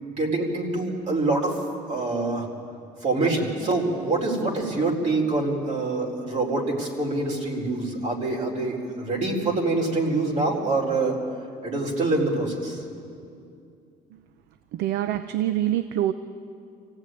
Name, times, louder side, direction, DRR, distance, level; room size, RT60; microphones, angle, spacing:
voice 1, 0.0-1.6 1.9-2.5 3.0-11.2 11.6-12.8, right 2 dB, 45° right, -1 dB, 4.4 m, -25 dB
voice 2, 14.7-16.1, right 12 dB, 85° right, 11 dB, 0.7 m, -25 dB
25.0 x 16.5 x 9.3 m, 2.5 s
cardioid pair, 110°, 17 cm